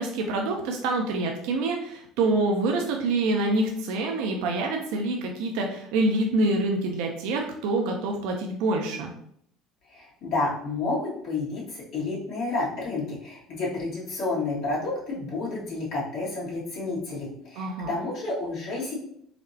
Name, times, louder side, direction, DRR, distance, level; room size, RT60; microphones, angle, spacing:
voice 1, 0.0-9.1 17.6-17.9, right 2 dB, 75° right, 2 dB, 0.5 m, -26 dB
voice 2, 9.9-18.9, left 3 dB, 65° left, -5 dB, 1.4 m, -30 dB
4.1 x 2.0 x 2.7 m, 0.67 s
supercardioid pair, 80°, 0 cm